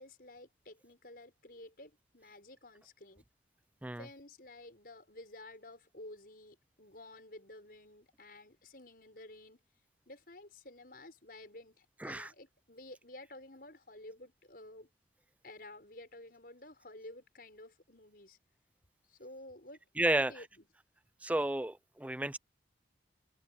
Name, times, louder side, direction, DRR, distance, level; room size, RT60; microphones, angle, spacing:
voice 1, 0.0-3.2 3.9-9.6 10.1-14.9 15.4-18.4 19.1-19.8 20.1-20.6, left 1 dB, 50° left, 6.4 m, -52 dB
voice 2, 12.0-12.3 20.0-20.3 21.2-22.4, right 1 dB, 10° right, 0.4 m, -32 dB
open air
head